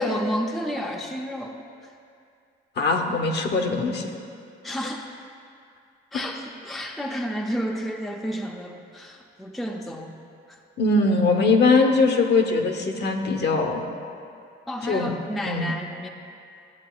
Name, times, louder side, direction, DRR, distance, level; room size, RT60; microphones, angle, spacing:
voice 1, 0.0-1.9 4.6-5.1 6.1-10.2 10.5-10.6 14.7-16.1, equal, ahead, 1 dB, 0.4 m, -31 dB
voice 2, 2.8-4.1 10.8-13.8 14.8-15.1 15.5-15.7, left 3 dB, 55° left, 3 dB, 0.8 m, -21 dB
13.0 x 7.6 x 2.3 m, 2.4 s
cardioid pair, 120°, 21 cm